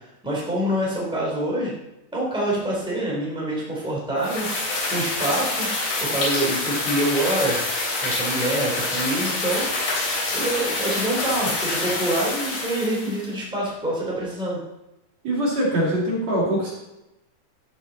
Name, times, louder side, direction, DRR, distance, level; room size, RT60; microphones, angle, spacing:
voice 1, 0.2-1.7 2.1-4.5 4.9-5.7 6.0-7.6 8.0-9.7 10.3-14.6, right 1 dB, ahead, -5 dB, 3.3 m, -26 dB
sound 1, 4.2-13.2, left 2 dB, 80° left, 5.4 m, -26 dB
voice 2, 15.2-16.7, right 1 dB, 55° right, -5 dB, 3.6 m, -23 dB
14.0 x 7.2 x 4.2 m, 0.93 s
omnidirectional pair, 3.8 m